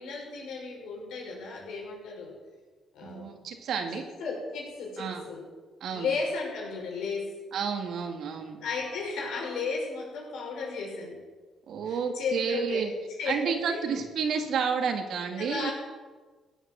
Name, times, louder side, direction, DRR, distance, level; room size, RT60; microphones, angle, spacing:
voice 1, 0.0-2.3 2.9-3.4 3.9-5.4 5.9-7.3 8.6-11.2 11.8-13.8 15.4-15.7, left 4 dB, 80° left, -1 dB, 5.9 m, -34 dB
voice 2, 3.0-4.1 5.0-5.2 5.8-6.1 7.5-8.6 11.7-12.9 13.3-15.7, right 6 dB, 70° right, 5 dB, 2.4 m, -30 dB
16.5 x 9.5 x 7.7 m, 1.4 s
cardioid pair, 90°, 0 cm